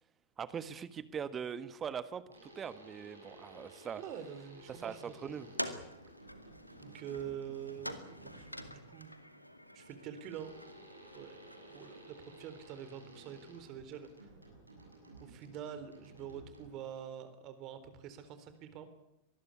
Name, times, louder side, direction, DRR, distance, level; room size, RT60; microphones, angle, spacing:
voice 1, 0.4-4.0 4.7-5.5, right 7 dB, 25° right, 15 dB, 1.5 m, -41 dB
sound 1, 2.3-8.9 10.3-17.0, right 1 dB, 85° right, 7.2 m, -55 dB
voice 2, 4.0-5.4 6.8-8.0 8.2-9.2 9.7-10.6 11.1-14.3 15.2-18.9, right 9 dB, 40° right, 11 dB, 3.8 m, -46 dB
sound 2, 5.4-12.1, equal, 90° left, 2.1 m, -46 dB
24.5 x 20.0 x 8.4 m, 0.81 s
figure-of-eight pair, 90°, 0 cm